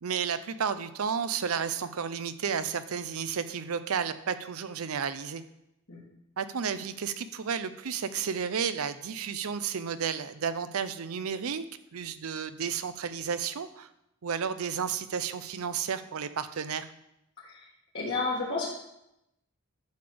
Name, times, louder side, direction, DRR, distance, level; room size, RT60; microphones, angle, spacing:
voice 1, 0.0-5.4 6.4-11.6 11.9-13.9 14.2-16.9, right 7 dB, 85° right, 12 dB, 0.6 m, -32 dB
voice 2, 17.9-18.7, left 3 dB, 60° left, -8 dB, 1.8 m, -31 dB
10.5 x 3.5 x 6.9 m, 0.83 s
head